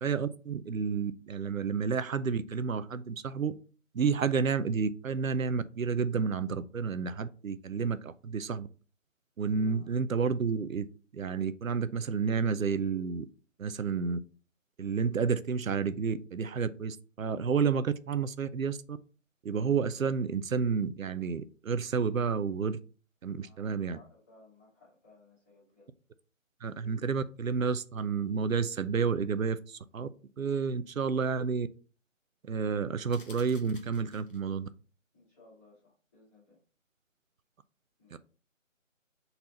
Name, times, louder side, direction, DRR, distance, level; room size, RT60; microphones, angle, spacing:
voice 1, 0.0-3.6 3.9-8.7 9.4-10.9 11.1-13.3 13.6-14.2 14.8-19.0 19.4-22.8 23.2-24.0 26.6-30.1 30.4-31.7 32.4-34.7 38.1-38.2, right 5 dB, 90° right, 0.7 m, -30 dB
voice 2, 23.2-25.9 35.1-36.6 38.0-38.2, left 3 dB, 10° left, 2.1 m, -60 dB
sound 1, 33.1-34.6, left 3 dB, 40° left, 0.8 m, -54 dB
4.3 x 4.1 x 5.4 m
figure-of-eight pair, 170°, 39 cm